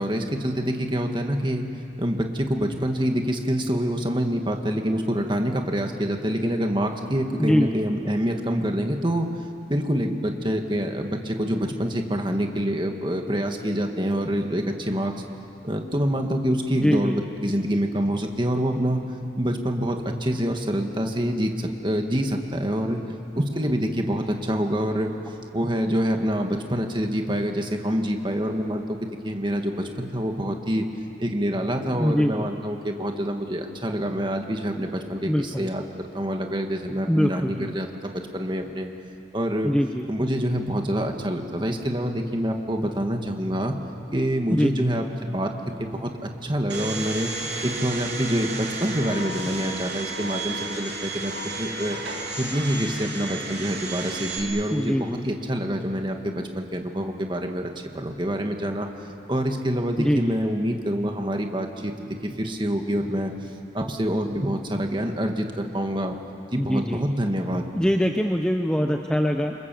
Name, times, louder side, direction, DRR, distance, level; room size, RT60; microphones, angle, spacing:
voice 1, 0.0-1.7 2.0-9.3 9.7-15.1 15.6-19.0 19.4-23.0 23.4-25.2 25.5-30.8 31.2-38.9 39.3-39.7 40.1-43.7 44.1-47.3 47.6-52.0 52.4-58.9 59.3-63.3 63.7-66.2 66.5-67.7, equal, 25° right, 4 dB, 1.9 m, -26 dB
voice 2, 7.4-7.7 16.8-17.1 32.0-32.5 35.2-35.7 37.0-37.7 39.6-40.1 44.5-44.7 54.7-55.2 60.0-60.3 66.6-67.0 67.7-69.5, equal, 5° left, 4 dB, 0.8 m, -23 dB
Domestic sounds home sounds, 46.7-54.4, right 3 dB, 60° right, 3.6 m, -32 dB
28.5 x 26.0 x 7.7 m, 2.7 s
head